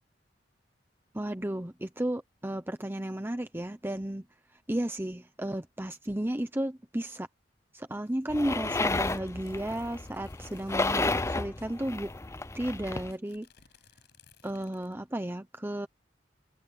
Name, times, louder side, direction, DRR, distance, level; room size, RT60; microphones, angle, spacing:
voice 1, 1.1-4.2 4.5-7.3 7.7-12.1 12.5-13.5 14.4-15.9, right 1 dB, 10° right, 0.9 m, -33 dB
sound 1, 7.9-10.9 11.2-11.3 11.5-15.1, left 5 dB, 65° left, 5.7 m, -62 dB
sound 2, 8.3-13.1, left 2 dB, 15° left, 0.6 m, -32 dB
head